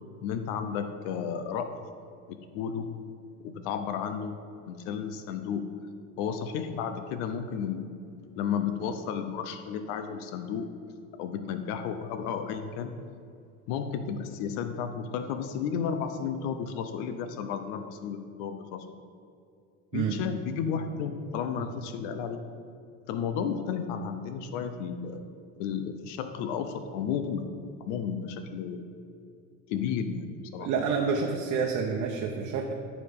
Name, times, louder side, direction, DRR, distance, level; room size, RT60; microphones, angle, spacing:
voice 1, 0.2-1.7 2.5-3.0 3.4-4.4 4.7-5.6 6.2-7.9 8.4-10.7 11.2-12.9 13.7-18.9 19.9-22.5 23.1-25.2 25.6-27.5 27.8-28.8 29.7-30.7, left 7 dB, 85° left, 8 dB, 0.7 m, -33 dB
voice 2, 30.6-32.7, right 5 dB, 55° right, 0 dB, 0.9 m, -28 dB
13.5 x 4.9 x 3.6 m, 2.5 s
cardioid pair, 145°, 36 cm